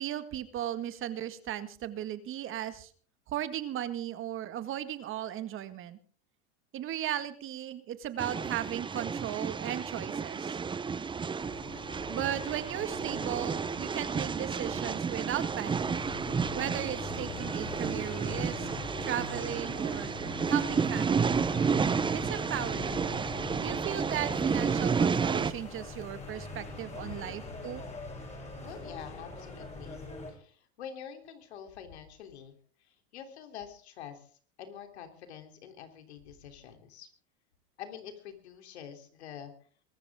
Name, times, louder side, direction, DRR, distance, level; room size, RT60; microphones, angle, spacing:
voice 1, 0.0-2.9 3.3-6.0 6.7-10.6 12.1-15.9 16.5-18.7 19.0-20.1 20.5-21.4 22.1-23.1 23.6-27.8, right 11 dB, 40° right, 11 dB, 1.9 m, -36 dB
sound 1, 8.2-25.5, right 6 dB, 15° right, 0.7 m, -31 dB
sound 2, 11.4-30.3, left 2 dB, 20° left, 7.4 m, -42 dB
voice 2, 28.6-30.0 30.3-32.6 33.1-34.3 34.6-37.1 37.8-39.5, left 8 dB, 90° left, 7 dB, 3.4 m, -46 dB
23.0 x 13.5 x 3.7 m, 0.43 s
supercardioid pair, 115°, 32 cm